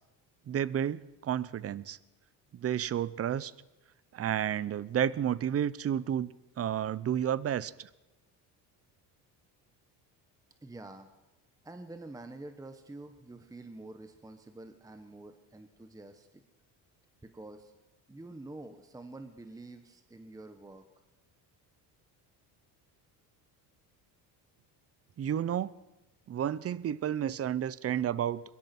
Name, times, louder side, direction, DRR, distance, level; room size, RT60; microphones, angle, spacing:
voice 1, 0.5-2.0 2.5-3.5 4.1-7.9 25.2-25.7 26.3-28.4, right 10 dB, 35° right, 19 dB, 0.7 m, -31 dB
voice 2, 10.6-11.1 11.6-16.4 17.2-17.7 18.1-20.8, right 2 dB, 10° right, 8 dB, 1.2 m, -47 dB
22.5 x 22.0 x 6.0 m, 1.0 s
cardioid pair, 130°, 42 cm